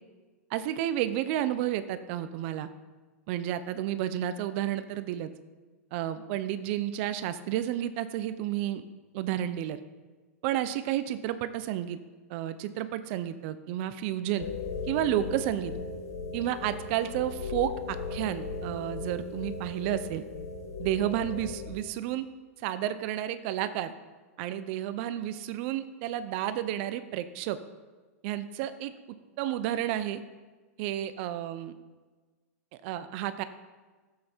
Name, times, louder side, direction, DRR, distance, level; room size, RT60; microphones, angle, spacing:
voice 1, 0.5-2.7 3.3-5.3 5.9-8.8 9.1-9.8 10.4-12.0 12.3-14.5 14.9-15.7 16.3-20.2 20.8-22.3 22.6-23.9 24.4-27.6 28.2-28.9 29.4-30.2 30.8-31.7 32.8-33.4, right 12 dB, 50° right, 12 dB, 0.6 m, -31 dB
sound 1, 14.4-21.7, left 3 dB, 85° left, 1.3 m, -37 dB
11.5 x 7.7 x 4.5 m, 1.3 s
hypercardioid pair, 120°, 8 cm